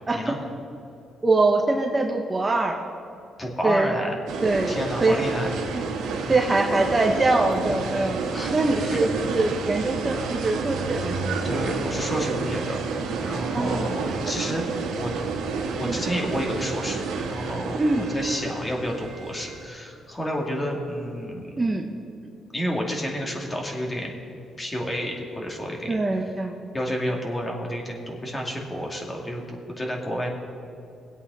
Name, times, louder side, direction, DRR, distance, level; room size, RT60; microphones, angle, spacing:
voice 1, 1.2-2.7 3.6-3.9 4.4-5.2 5.7-5.8 6.3-11.4 13.5-13.9 15.8-16.0 17.8-18.0 21.6-21.8 25.9-26.5, right 2 dB, 25° right, 2 dB, 1.1 m, -23 dB
voice 2, 3.4-4.1 4.7-5.5 8.3-9.0 11.4-12.8 13.2-14.6 15.0-15.1 15.7-21.5 22.5-24.2 24.6-26.0 26.7-29.4 29.8-30.3, equal, 20° left, 0 dB, 2.6 m, -30 dB
sound 1, 4.3-19.6, right 4 dB, 90° right, 1.9 m, -30 dB
21.5 x 8.3 x 4.2 m, 2.6 s
cardioid pair, 90°, 0 cm